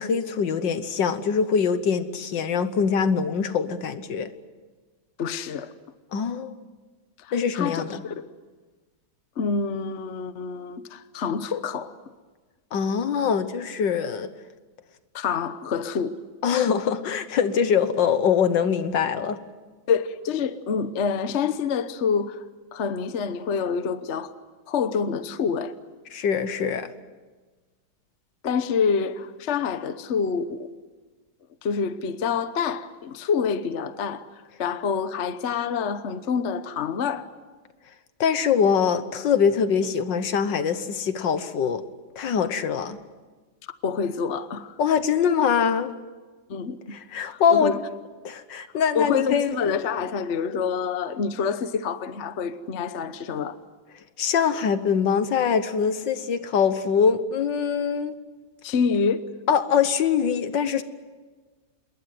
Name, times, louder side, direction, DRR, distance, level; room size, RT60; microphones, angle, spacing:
voice 1, 0.0-4.3 6.1-6.5 7.3-8.0 12.7-14.3 16.4-19.4 26.1-26.9 38.2-41.8 42.2-43.0 44.8-45.9 46.9-47.7 48.2-49.7 54.2-58.1 59.5-60.8, left 7 dB, 65° left, 1.8 m, -23 dB
voice 2, 5.2-5.7 7.2-8.3 9.4-11.9 15.1-16.2 19.9-22.4 22.7-24.3 24.7-25.7 28.4-30.7 31.6-34.3 34.6-37.3 43.8-44.7 46.5-46.9 47.3-47.8 48.9-53.6 58.6-59.2, left 6 dB, 45° left, 1.1 m, -27 dB
27.5 x 21.5 x 7.8 m
omnidirectional pair, 2.1 m